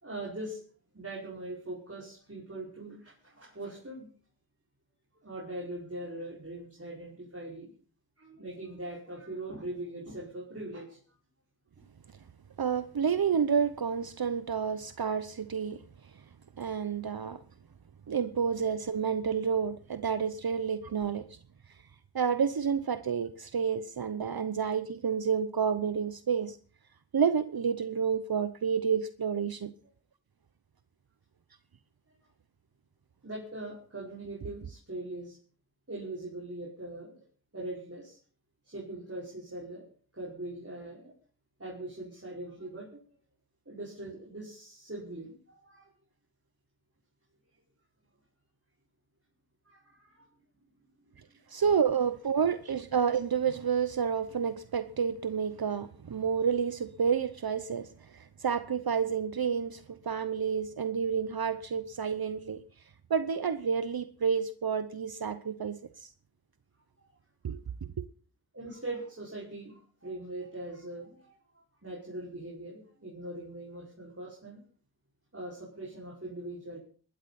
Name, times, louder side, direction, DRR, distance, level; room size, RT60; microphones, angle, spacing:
voice 1, 0.0-0.6 0.9-4.1 5.2-7.7 8.2-11.0 32.1-32.2 33.2-35.4 35.9-37.2 37.5-38.2 38.6-39.9 40.1-41.1 41.6-43.0 43.7-45.9 49.6-50.3 51.3-51.4 68.5-74.6 75.3-76.8, right 1 dB, 35° right, 5.5 m, -41 dB
voice 2, 12.6-15.8 16.6-17.4 18.1-21.3 22.1-26.6 27.1-29.7 51.5-57.9 58.1-62.6 63.1-66.1 67.4-67.6, right 6 dB, 60° right, 0.9 m, -29 dB
20.0 x 13.0 x 4.2 m
cardioid pair, 45°, 42 cm